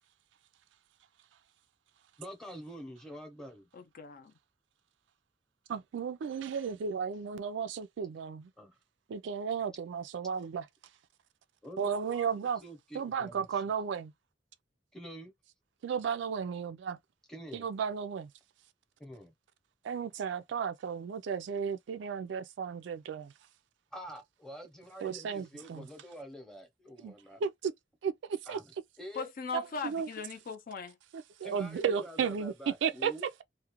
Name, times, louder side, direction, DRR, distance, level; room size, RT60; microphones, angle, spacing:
voice 1, 2.2-3.7 8.6-8.8 11.6-13.7 14.9-15.3 17.3-17.7 19.0-19.3 23.9-27.4 28.5-28.7 29.0-29.3 31.4-33.2, equal, 5° left, 0.7 m, -47 dB
voice 2, 3.7-4.3 29.2-31.0, left 5 dB, 50° left, 0.4 m, -39 dB
voice 3, 5.7-8.5 9.1-10.6 11.8-12.6 12.9-14.1 15.8-17.0 17.5-18.3 19.8-23.3 25.0-25.9 27.0-27.1 27.4-27.7 28.0-28.6 29.5-30.1 31.1-33.1, right 6 dB, 70° right, 0.3 m, -34 dB
2.4 x 2.1 x 2.9 m
head